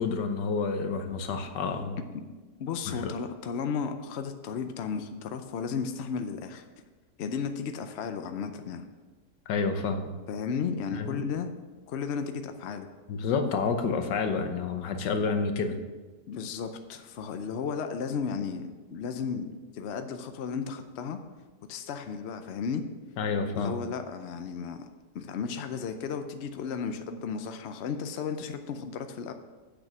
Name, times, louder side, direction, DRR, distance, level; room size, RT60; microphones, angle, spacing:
voice 1, 0.0-2.0 2.9-3.1 9.5-10.1 10.9-11.2 13.1-15.8 23.2-23.8, left 4 dB, 85° left, 7 dB, 1.5 m, -29 dB
voice 2, 2.6-6.7 7.2-8.9 10.3-11.5 11.9-12.9 16.3-21.2 21.7-22.8 23.5-24.9 25.1-29.3, left 6 dB, 70° left, 7 dB, 0.6 m, -34 dB
8.4 x 6.3 x 6.0 m, 1.3 s
omnidirectional pair, 1.8 m